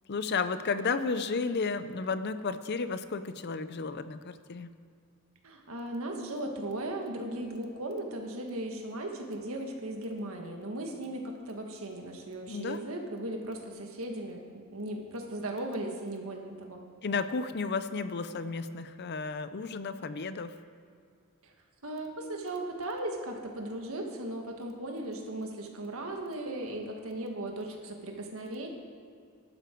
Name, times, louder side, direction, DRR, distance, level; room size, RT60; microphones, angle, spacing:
voice 1, 0.1-4.7 12.5-12.9 17.0-20.6, left 4 dB, 50° left, 12 dB, 0.6 m, -33 dB
voice 2, 5.4-16.8 21.4-21.5 21.8-28.7, right 1 dB, 70° right, 2 dB, 1.7 m, -37 dB
15.5 x 11.5 x 4.6 m, 2.3 s
head